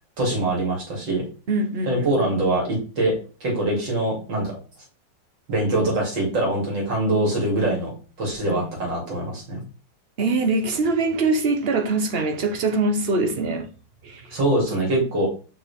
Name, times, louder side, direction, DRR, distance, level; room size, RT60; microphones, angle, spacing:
voice 1, 0.2-1.2 1.9-3.1 3.4-4.6 5.5-9.6 14.3-15.3, right 1 dB, 80° right, 3.8 m, -23 dB
voice 2, 1.5-2.3 8.4-8.7 10.2-13.7 14.0-14.4, right 3 dB, 40° right, 1.0 m, -23 dB
7.0 x 6.2 x 3.6 m
omnidirectional pair, 2.0 m